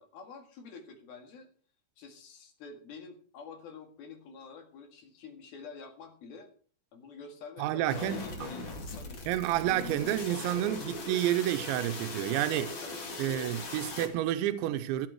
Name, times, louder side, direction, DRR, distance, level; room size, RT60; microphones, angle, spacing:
voice 1, 0.0-1.5 2.0-6.5 6.9-9.3 12.6-13.4, left 5 dB, 60° left, 3.5 m, -48 dB
voice 2, 7.6-8.5 9.3-12.7 13.2-15.1, right 13 dB, 90° right, 3.0 m, -30 dB
sound 1, 7.9-14.1, left 3 dB, 35° left, 2.1 m, -40 dB
15.5 x 9.4 x 4.6 m
omnidirectional pair, 5.2 m